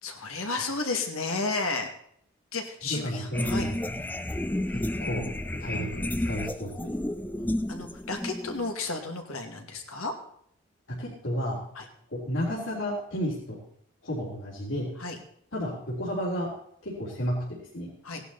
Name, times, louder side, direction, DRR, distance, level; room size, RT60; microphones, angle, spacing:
voice 1, 0.0-1.9 2.5-3.7 7.4-10.1 11.8-11.9 15.0-15.2 18.0-18.2, left 3 dB, 85° left, 4 dB, 2.3 m, -32 dB
voice 2, 2.8-4.0 4.7-6.9 10.9-11.6 12.1-13.6 14.0-14.9 15.5-16.5 16.8-17.9, equal, 60° left, -5 dB, 3.5 m, -32 dB
sound 1, 3.3-8.7, left 1 dB, 10° left, 0.4 m, -32 dB
17.0 x 11.0 x 4.2 m, 0.67 s
head